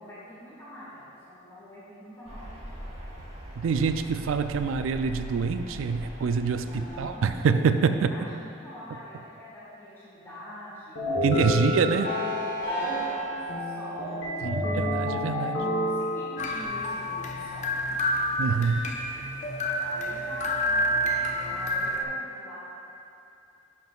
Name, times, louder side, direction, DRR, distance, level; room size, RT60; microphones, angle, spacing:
voice 1, 0.0-2.5 6.6-7.4 7.9-11.7 12.6-14.8 15.2-15.5 15.8-18.0 19.8-22.6, equal, 15° left, -10 dB, 1.6 m, -44 dB
sound 1, 2.2-7.4, equal, 35° right, 1.2 m, -41 dB
voice 2, 3.6-8.1 11.2-12.1 14.4-15.6 18.4-18.9, right 5 dB, 75° right, 9 dB, 0.4 m, -25 dB
sound 2, 11.0-16.7, left 1 dB, 70° left, 1.1 m, -29 dB
sound 3, 16.4-22.0, equal, 35° left, 0.4 m, -29 dB
10.5 x 6.0 x 2.4 m, 2.7 s
head